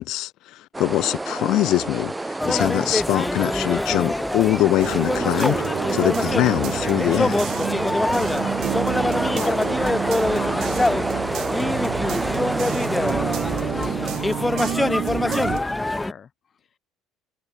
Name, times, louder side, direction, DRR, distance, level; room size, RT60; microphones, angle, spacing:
voice 1, 0.0-7.4, left 16 dB, 65° left, 0.6 m, -23 dB
sound 1, 0.7-14.2, right 2 dB, 10° right, 2.5 m, -29 dB
sound 2, 2.4-16.1, left 2 dB, 10° left, 0.7 m, -25 dB
sound 3, 4.8-15.6, right 14 dB, 55° right, 1.8 m, -30 dB
voice 2, 8.3-8.7 9.3-16.3, left 7 dB, 30° left, 7.2 m, -40 dB
cardioid pair, 130°, 0 cm